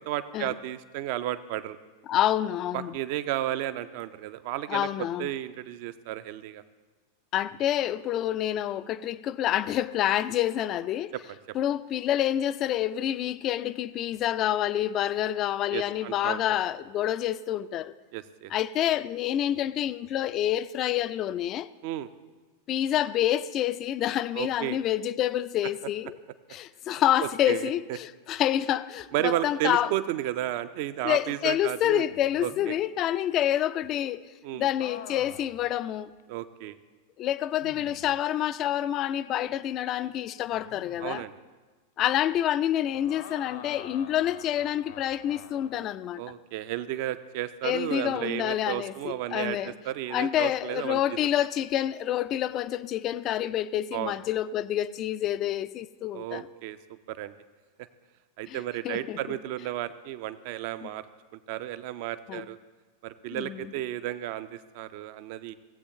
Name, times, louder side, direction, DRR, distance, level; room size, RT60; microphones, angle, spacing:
voice 1, 0.1-1.8 2.7-4.9 5.2-6.6 11.1-11.2 15.7-16.4 18.1-18.5 21.8-22.1 24.4-24.8 27.2-27.7 29.1-32.1 32.4-32.8 34.4-34.7 36.3-36.8 41.0-41.3 46.2-51.0 53.9-54.1 56.1-56.8 57.1-57.3 58.4-61.0 61.3-62.6 63.0-65.5, right 13 dB, 45° right, 0.5 m, -33 dB
voice 2, 2.1-2.9 4.7-5.3 7.3-11.1 11.5-17.9 18.5-21.7 22.7-26.2 26.5-29.9 31.0-34.2 34.5-36.1 37.2-41.2 42.0-46.2 47.6-49.7 50.1-56.5 58.5-58.6 58.8-59.4 60.8-60.9 62.3-62.5 63.3-63.7, left 12 dB, 35° left, 0.3 m, -28 dB
sound 1, 32.1-32.8 34.8-35.6 36.2-36.3 37.6-38.2 40.5-41.2 42.9-45.8 48.0-48.4, left 7 dB, 55° left, 0.7 m, -46 dB
17.0 x 8.2 x 2.9 m
figure-of-eight pair, 90°, 0 cm